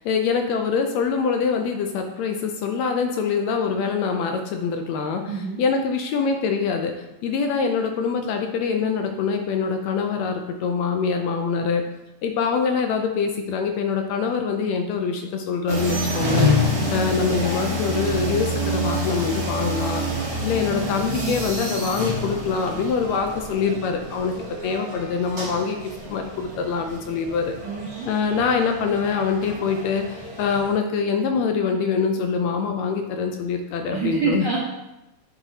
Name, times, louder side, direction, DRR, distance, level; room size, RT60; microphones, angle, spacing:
voice 1, 0.0-11.8 12.2-16.5 16.9-24.3 24.6-27.5 28.1-34.5, left 5 dB, 80° left, 4 dB, 1.7 m, -24 dB
voice 2, 5.3-5.6 16.7-16.9 27.6-28.1 33.9-34.6, right 6 dB, 85° right, -4 dB, 0.9 m, -27 dB
sound 1, 15.7-30.7, equal, 45° right, 1.4 m, -28 dB
8.0 x 5.7 x 2.8 m, 0.97 s
omnidirectional pair, 3.4 m